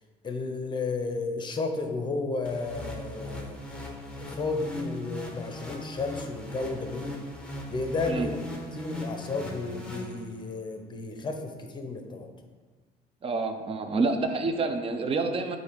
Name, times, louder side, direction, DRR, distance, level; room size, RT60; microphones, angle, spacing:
voice 1, 0.2-3.6 4.4-7.2 7.7-8.4 8.7-12.3, left 3 dB, 25° left, 5 dB, 0.8 m, -32 dB
sound 1, 2.4-10.6, left 1 dB, 5° left, 1.0 m, -39 dB
voice 2, 13.2-15.6, right 3 dB, 35° right, 7 dB, 0.6 m, -28 dB
7.8 x 2.7 x 5.1 m, 1.4 s
cardioid pair, 110°, 17 cm